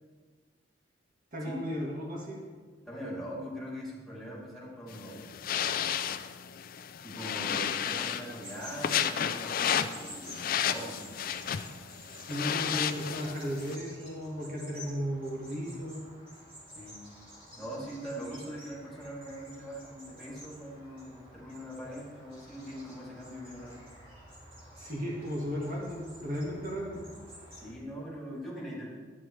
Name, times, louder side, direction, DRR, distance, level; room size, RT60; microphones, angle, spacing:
voice 1, 1.3-2.4 12.2-16.0 24.8-27.0, equal, 50° right, -2 dB, 1.5 m, -35 dB
voice 2, 2.8-6.0 7.0-11.1 16.7-17.0 17.6-23.8 27.6-29.0, equal, ahead, -6 dB, 2.4 m, -42 dB
sound 1, 4.9-13.8, left 9 dB, 50° left, 0.4 m, -33 dB
sound 2, 8.4-27.7, equal, 30° right, 2.7 m, -51 dB
11.0 x 8.7 x 3.1 m, 1.5 s
head